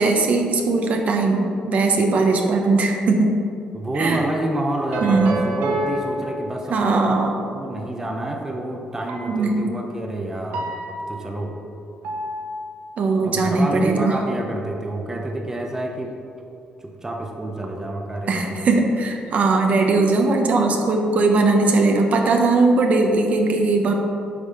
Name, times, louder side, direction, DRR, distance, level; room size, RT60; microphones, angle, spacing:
voice 1, 0.0-3.3 4.0-4.2 5.0-5.4 6.7-7.4 9.3-9.7 13.0-14.2 18.3-23.9, right 3 dB, 55° right, 3 dB, 0.8 m, -19 dB
voice 2, 3.7-7.3 7.5-11.6 13.2-16.2 16.8-18.6, right 1 dB, 15° right, 1 dB, 0.7 m, -28 dB
sound 1, 4.9-7.1 9.1-9.6 10.5-11.5 12.0-12.8, right 1 dB, 85° right, 1.0 m, -29 dB
8.1 x 3.5 x 5.6 m, 2.6 s
cardioid pair, 105°, 3 cm